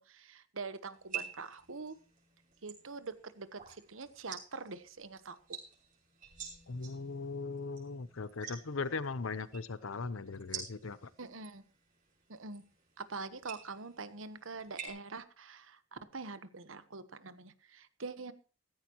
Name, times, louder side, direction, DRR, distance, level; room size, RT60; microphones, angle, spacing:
voice 1, 0.0-2.0 2.6-5.6 11.2-11.6 12.3-12.6 13.0-18.3, right 4 dB, 75° right, 13 dB, 1.2 m, -44 dB
sound 1, 0.9-14.9, right 7 dB, 45° right, 6.1 m, -49 dB
voice 2, 6.7-11.1, left 4 dB, 85° left, 16 dB, 0.8 m, -39 dB
15.5 x 15.0 x 3.0 m, 0.37 s
head